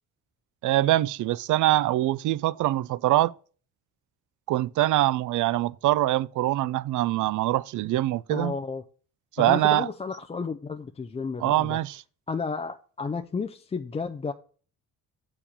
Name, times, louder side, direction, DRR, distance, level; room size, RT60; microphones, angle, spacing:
voice 1, 0.6-3.3 4.5-8.5 9.4-9.9 11.4-12.0, right 15 dB, 60° right, 0.4 m, -24 dB
voice 2, 8.3-8.8 9.4-11.8 12.3-14.3, left 4 dB, 20° left, 0.4 m, -32 dB
7.3 x 4.9 x 6.7 m
cardioid pair, 105°, 34 cm